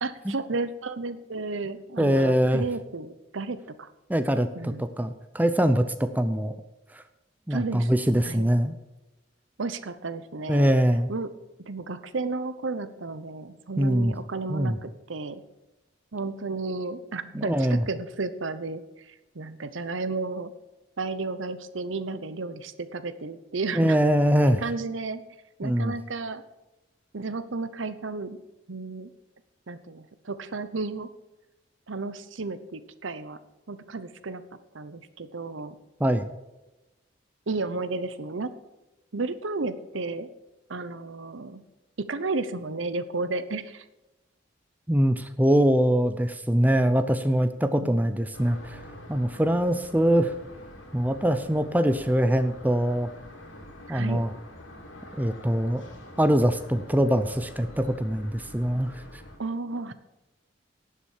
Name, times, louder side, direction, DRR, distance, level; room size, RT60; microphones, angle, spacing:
voice 1, 0.0-3.9 4.6-4.9 7.5-7.9 8.2-8.5 9.6-10.7 11.1-11.3 11.7-15.4 16.1-20.5 21.0-24.0 24.6-25.2 25.6-26.4 27.1-28.4 28.7-29.1 29.7-31.1 31.9-33.4 33.7-34.4 34.7-35.8 37.5-38.5 39.1-40.3 40.7-41.6 42.0-43.8 47.8-48.0 53.9-54.2 59.4-59.9, right 3 dB, 80° right, 13 dB, 0.9 m, -33 dB
voice 2, 2.0-2.6 4.1-6.5 6.9-7.0 7.5-8.8 10.5-11.1 13.8-14.1 14.5-14.8 17.3-17.8 23.7-24.6 25.6-25.9 36.0-36.3 44.9-48.8 49.1-50.3 50.9-53.1 53.9-54.3 55.2-55.8 56.2-59.0, equal, 10° right, 10 dB, 0.5 m, -23 dB
sound 1, 48.3-59.4, left 1 dB, 80° left, 2.7 m, -46 dB
11.0 x 7.4 x 7.3 m, 1.0 s
head